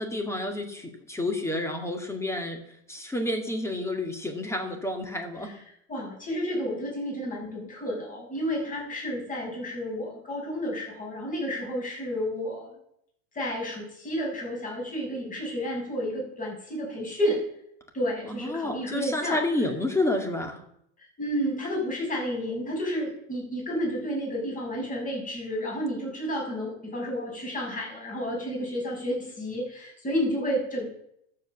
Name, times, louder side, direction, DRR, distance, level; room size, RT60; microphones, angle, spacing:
voice 1, 0.0-2.6 2.9-5.5 18.3-20.6, left 1 dB, 10° left, 4 dB, 2.2 m, -29 dB
voice 2, 5.9-12.8 13.3-17.4 17.9-19.4 21.2-30.9, equal, 25° left, 0 dB, 6.3 m, -31 dB
13.0 x 7.7 x 7.2 m, 0.73 s
supercardioid pair, 120°, 33 cm